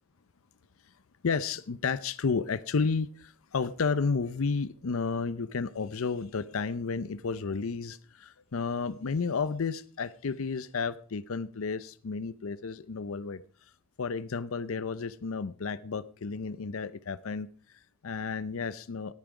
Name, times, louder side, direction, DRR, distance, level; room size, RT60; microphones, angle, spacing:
voice 1, 1.2-13.4 14.0-19.1, left 5 dB, 75° left, 16 dB, 0.6 m, -32 dB
18.5 x 9.0 x 4.8 m, 0.44 s
head